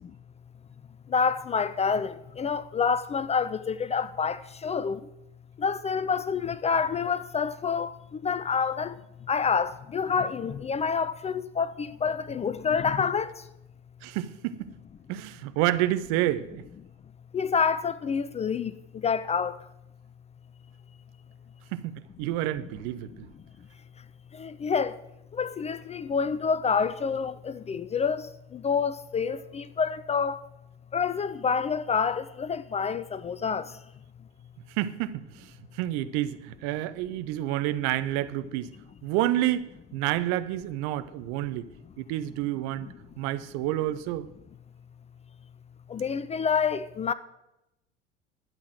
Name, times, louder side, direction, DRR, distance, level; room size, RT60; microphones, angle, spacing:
voice 1, 1.1-5.0 5.6-7.9 8.2-8.9 9.3-13.3 17.3-18.7 19.0-19.6 24.4-24.9 25.3-30.4 30.9-33.7 45.9-47.1, left 6 dB, 20° left, 0.5 m, -27 dB
voice 2, 14.0-14.7 15.1-16.6 21.7-23.3 34.7-38.7 39.0-41.7 42.0-42.9 43.2-44.3, right 14 dB, 50° right, 0.9 m, -29 dB
12.0 x 8.1 x 7.7 m
figure-of-eight pair, 65°, 35 cm